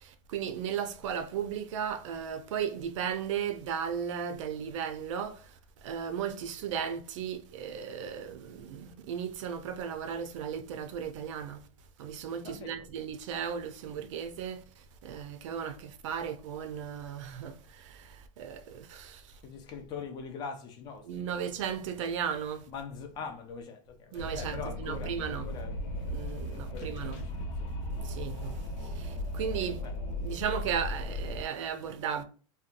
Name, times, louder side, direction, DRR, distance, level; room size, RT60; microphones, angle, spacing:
voice 1, 0.3-5.4 5.8-11.6 12.0-14.6 15.0-17.6 18.4-19.2 21.1-22.6 24.1-25.5 26.1-27.2 28.1-28.6 29.0-29.1 29.3-29.8 30.2-32.2, right 8 dB, 60° right, 0.5 m, -35 dB
voice 2, 12.4-12.9 19.4-21.7 22.7-25.8 26.5-27.7 29.8-30.0, left 6 dB, 25° left, 0.4 m, -43 dB
Wind, 24.2-31.4, left 1 dB, 55° left, 0.9 m, -36 dB
2.7 x 2.2 x 2.4 m
supercardioid pair, 155°, 18 cm